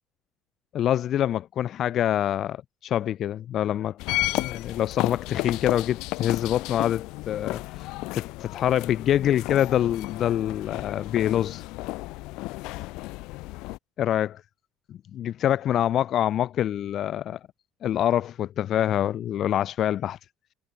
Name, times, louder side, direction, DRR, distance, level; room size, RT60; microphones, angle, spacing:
voice 1, 0.7-4.0 4.4-11.6 14.0-14.4 14.9-17.4 17.8-20.2, left 11 dB, 40° left, 8.0 m, -25 dB
sound 1, 4.0-13.8, left 22 dB, 70° left, 6.9 m, -33 dB
cardioid pair, 175°, 0 cm